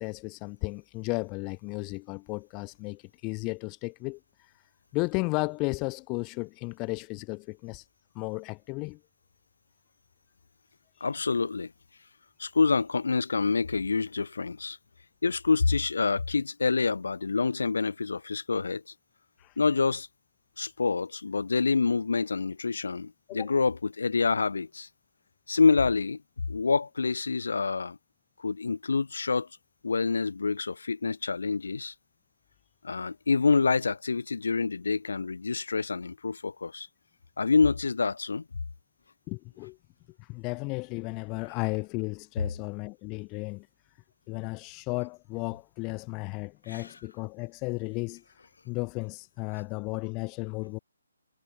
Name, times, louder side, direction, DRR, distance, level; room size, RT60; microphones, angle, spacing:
voice 1, 0.0-4.2 4.9-7.8 8.2-9.0 19.4-19.5 23.3-23.5 39.3-39.8 40.2-43.7 44.3-48.2 48.7-50.8, left 28 dB, 20° left, 0.6 m, -34 dB
voice 2, 11.0-11.7 12.4-14.8 15.2-18.8 19.6-20.1 20.6-24.9 25.5-26.2 26.5-28.0 28.4-29.5 29.8-31.9 32.8-36.9 37.4-38.4 46.7-46.9, left 4 dB, 75° left, 2.9 m, -27 dB
hypercardioid pair, 160°, 0 cm